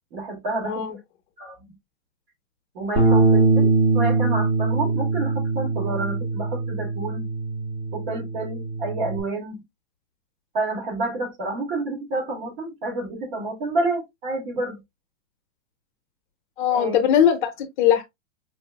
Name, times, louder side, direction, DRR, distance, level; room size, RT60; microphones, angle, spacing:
voice 1, 0.1-0.8 1.4-1.6 2.7-7.2 7.9-9.6 10.5-14.8 16.7-17.0, right 2 dB, 50° right, 2.3 m, -29 dB
voice 2, 0.6-1.0 16.6-18.0, left 9 dB, 45° left, 0.7 m, -20 dB
Bass guitar, 3.0-9.2, right 3 dB, 15° right, 0.8 m, -22 dB
4.7 x 2.6 x 2.2 m
hypercardioid pair, 155°, 35 cm